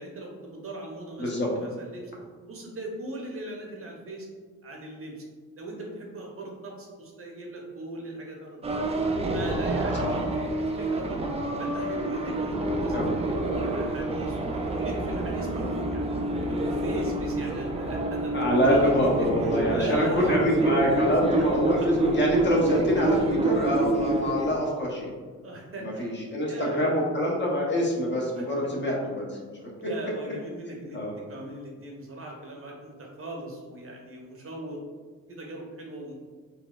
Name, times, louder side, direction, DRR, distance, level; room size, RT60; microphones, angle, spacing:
voice 1, 0.0-2.1 2.4-4.3 4.6-5.2 5.6-8.6 9.3-11.3 11.6-16.0 16.5-18.9 19.4-20.7 25.4-26.1 26.5-26.8 29.8-34.8 35.3-36.1, right 2 dB, 40° right, -1 dB, 0.8 m, -39 dB
sound 1, 8.6-24.6, right 2 dB, 20° right, 0.3 m, -27 dB
voice 2, 18.3-25.1 25.8-29.7 30.9-31.1, equal, 30° left, -2 dB, 0.8 m, -25 dB
4.1 x 2.2 x 2.3 m, 1.5 s
supercardioid pair, 70°, 36 cm